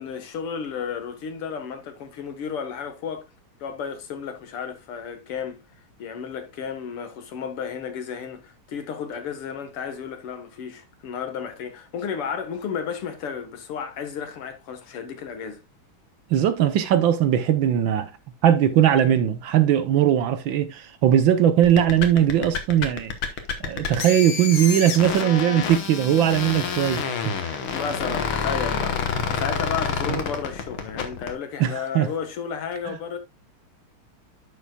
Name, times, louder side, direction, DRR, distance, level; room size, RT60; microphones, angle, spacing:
voice 1, 0.0-3.3 3.6-5.6 6.0-15.6 27.7-33.2, left 7 dB, 90° left, 2.4 m, -33 dB
voice 2, 16.3-18.1 18.4-23.1 23.6-27.6 29.1-29.2 30.1-30.2 31.6-32.1 32.9-33.0, right 10 dB, 70° right, 1.5 m, -20 dB
sound 1, 21.6-31.3, left 6 dB, 70° left, 2.1 m, -28 dB
10.5 x 7.1 x 2.3 m
omnidirectional pair, 2.4 m